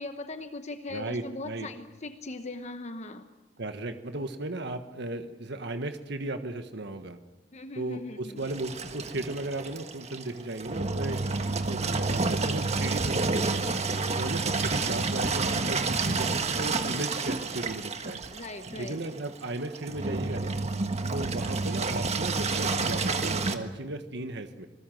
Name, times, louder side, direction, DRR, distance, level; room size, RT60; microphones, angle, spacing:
voice 1, 0.0-3.2 7.5-8.4 17.1-17.2 18.3-19.0 21.1-21.2, left 2 dB, 40° left, 8 dB, 1.1 m, -40 dB
voice 2, 0.9-1.7 3.6-7.2 7.7-13.6 14.2-18.2 18.8-20.6 21.1-24.7, right 2 dB, 65° right, 8 dB, 1.5 m, -36 dB
Engine, 8.4-23.6, right 3 dB, 35° right, 1.5 m, -29 dB
26.5 x 20.0 x 7.8 m, 1.1 s
head